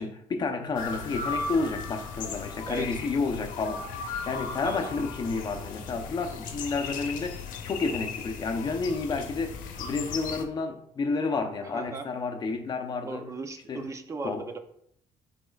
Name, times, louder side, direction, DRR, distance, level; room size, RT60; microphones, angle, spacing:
voice 1, 0.0-13.3 13.7-13.9 14.2-14.4, left 4 dB, 30° left, 0.7 m, -31 dB
sound 1, 0.7-10.4, left 5 dB, 80° left, 0.9 m, -36 dB
voice 2, 2.7-3.0 4.6-4.9 11.6-12.1 13.0-14.6, right 3 dB, 20° right, 0.5 m, -37 dB
10.0 x 4.3 x 2.4 m
cardioid pair, 165°, 14 cm